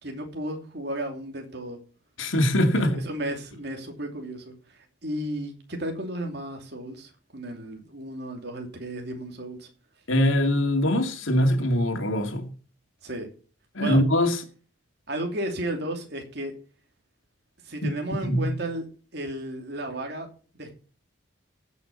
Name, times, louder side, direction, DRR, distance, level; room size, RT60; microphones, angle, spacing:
voice 1, 0.0-1.8 2.7-9.7 13.0-13.3 13.8-14.0 15.1-16.5 17.6-18.8 19.1-20.3 20.5-20.8, right 1 dB, 55° right, 2.7 m, -34 dB
voice 2, 2.2-3.0 10.1-12.5 13.7-14.4 17.8-17.9 18.3-18.4, left 1 dB, 85° left, 2.3 m, -22 dB
15.5 x 6.3 x 5.3 m
head